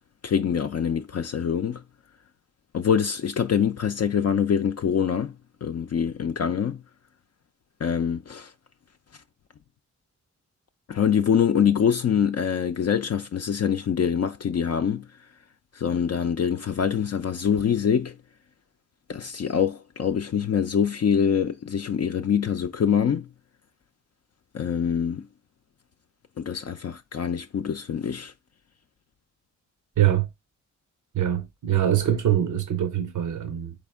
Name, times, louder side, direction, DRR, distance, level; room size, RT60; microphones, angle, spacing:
voice 1, 0.2-1.8 2.7-5.4 5.6-6.8 7.8-8.5 10.9-15.3 15.7-18.2 19.1-23.3 24.5-25.3 26.4-28.3, left 8 dB, 55° left, 0.4 m, -24 dB
voice 2, 30.0-30.3 31.1-33.7, right 11 dB, 85° right, 0.6 m, -23 dB
4.2 x 3.4 x 3.5 m
cardioid pair, 55°, 30 cm